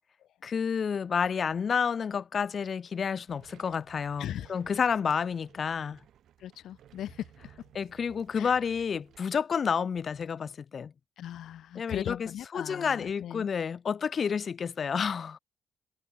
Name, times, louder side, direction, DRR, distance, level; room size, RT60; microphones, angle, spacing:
voice 1, 0.4-6.0 7.7-10.9 11.7-15.4, left 6 dB, 35° left, 1.0 m, -30 dB
sound 1, 3.2-9.2, right 10 dB, 65° right, 4.9 m, -57 dB
voice 2, 4.2-4.5 6.4-7.3 8.3-8.6 11.2-13.5, left 11 dB, 70° left, 1.9 m, -38 dB
cardioid pair, 165°, 0 cm